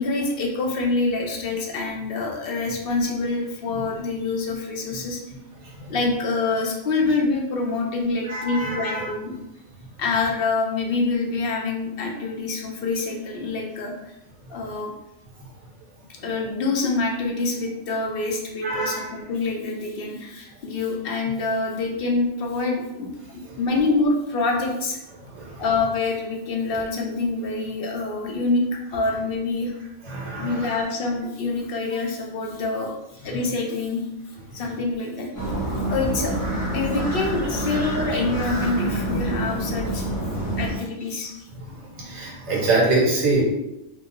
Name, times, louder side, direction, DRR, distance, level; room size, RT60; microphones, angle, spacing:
voice 1, 0.0-5.2 5.9-9.3 10.0-14.2 14.5-14.9 16.2-25.0 25.6-28.6 28.9-29.7 30.4-32.9 33.2-34.0 34.5-36.4 36.7-40.1 40.6-41.3, left 3 dB, 60° left, 0 dB, 0.7 m, -26 dB
voice 2, 8.3-9.0 18.6-19.1 25.3-25.6 30.0-30.7 35.6-35.8 37.8-38.2 40.3-40.6 41.6-43.4, right 2 dB, 70° right, -4 dB, 1.3 m, -25 dB
sound 1, 35.3-40.7, right 1 dB, 20° left, 0.7 m, -27 dB
2.9 x 2.1 x 3.6 m, 0.91 s
omnidirectional pair, 1.2 m